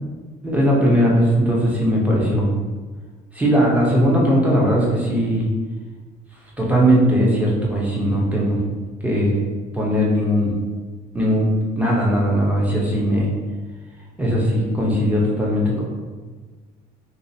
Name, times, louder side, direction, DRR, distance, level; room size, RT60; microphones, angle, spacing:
voice 1, 0.4-2.5 3.3-5.5 6.6-8.6 9.0-9.3 9.7-10.5 11.1-11.5 11.8-13.3 14.2-15.8, equal, 10° right, -4 dB, 0.9 m, -19 dB
3.2 x 2.8 x 2.8 m, 1.4 s
cardioid pair, 110°, 17 cm